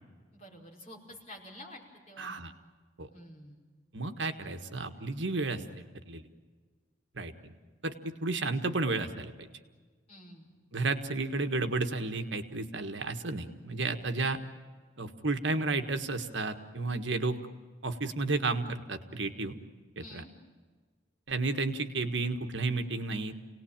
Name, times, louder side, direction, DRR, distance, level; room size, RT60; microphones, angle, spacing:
voice 1, 0.3-1.8 2.1-2.4 3.1-3.6 10.1-10.5 20.0-20.3, left 1 dB, 35° left, -2 dB, 5.0 m, -49 dB
voice 2, 2.2-2.5 3.0-3.1 3.9-5.6 6.1-6.2 7.2-7.5 7.8-9.5 10.7-14.4 15.0-17.4 17.8-19.6 20.0-20.2 21.3-23.3, right 3 dB, 65° right, 7 dB, 1.6 m, -32 dB
28.5 x 18.5 x 8.9 m, 1.5 s
head